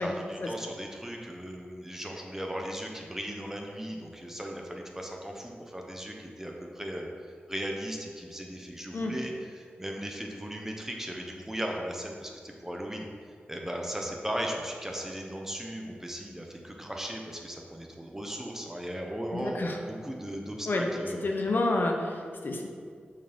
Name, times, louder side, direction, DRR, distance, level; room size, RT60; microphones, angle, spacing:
voice 1, 0.0-7.1 7.5-13.1 13.5-21.2, equal, 10° right, 1 dB, 1.1 m, -37 dB
voice 2, 19.3-19.8 20.7-20.9 21.2-22.7, left 2 dB, 60° left, 1 dB, 0.9 m, -29 dB
6.1 x 4.8 x 5.3 m, 2.1 s
cardioid pair, 50°, 4 cm